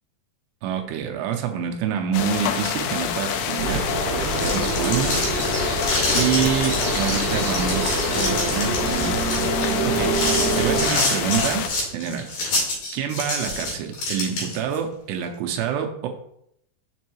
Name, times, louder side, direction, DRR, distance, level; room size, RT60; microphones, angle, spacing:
voice 1, 0.6-3.9 4.2-5.2 6.1-9.2 9.8-10.2 10.6-11.6 11.9-12.3 12.9-16.1, right 8 dB, 85° right, 4 dB, 2.8 m, -27 dB
sound 1, 2.1-11.7, left 8 dB, 85° left, 2.8 m, -27 dB
sound 2, 3.6-10.9, right 3 dB, 60° right, 1.8 m, -26 dB
sound 3, 4.2-14.8, left 2 dB, 60° left, 3.7 m, -27 dB
6.9 x 5.4 x 3.0 m, 0.74 s
omnidirectional pair, 4.9 m